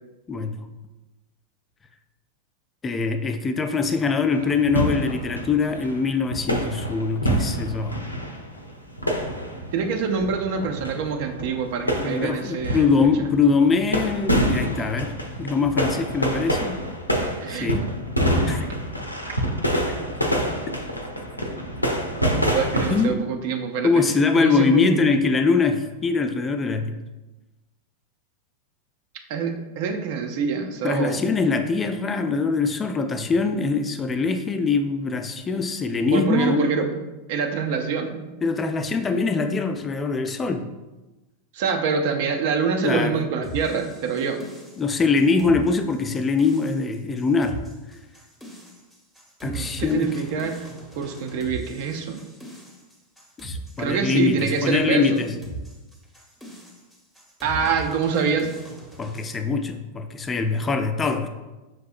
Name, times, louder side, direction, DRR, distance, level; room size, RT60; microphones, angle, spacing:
voice 1, 2.8-8.0 12.0-15.1 15.4-16.8 17.5-17.8 18.5-18.7 19.8-20.0 22.9-23.2 23.8-27.0 30.8-36.7 38.4-40.6 42.8-43.2 44.8-47.6 49.4-50.2 53.4-55.3 59.0-61.3, left 4 dB, 20° left, 7 dB, 0.3 m, -23 dB
sound 1, 4.3-23.1, equal, 85° left, 0.4 m, -27 dB
voice 2, 9.7-13.1 17.4-17.7 19.2-19.3 22.5-23.9 24.3-25.0 29.3-31.2 36.1-36.9 37.3-38.3 41.5-44.5 49.4-50.7 51.0-52.3 53.8-55.3 57.4-58.5, right 5 dB, 50° right, 5 dB, 0.5 m, -25 dB
sound 2, 43.4-59.3, right 2 dB, 5° right, 0.8 m, -40 dB
5.8 x 2.7 x 2.4 m, 1.1 s
figure-of-eight pair, 90°, 0 cm